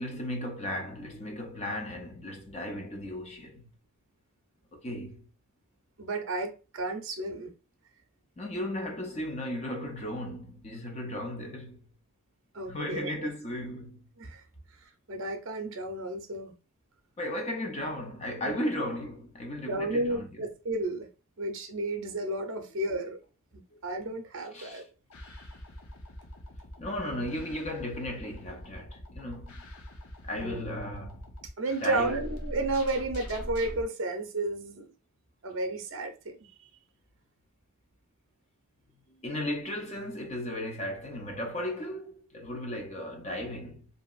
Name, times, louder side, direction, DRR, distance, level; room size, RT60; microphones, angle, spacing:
voice 1, 0.0-3.6 4.7-5.3 8.4-11.8 12.7-14.0 17.2-20.3 22.6-22.7 24.5-24.8 26.8-29.5 30.2-31.2 31.8-32.2 39.2-43.9, left 1 dB, 30° left, 0.5 m, -35 dB
voice 2, 6.0-7.5 12.5-13.3 14.2-14.4 15.1-16.5 18.4-18.7 19.7-21.1 21.4-23.2 23.8-24.8 25.2-25.4 30.3-30.6 31.6-34.9 35.4-36.5, right 2 dB, 60° right, 0.6 m, -32 dB
sound 1, 25.1-33.8, equal, 80° left, 0.7 m, -43 dB
2.8 x 2.6 x 2.3 m
head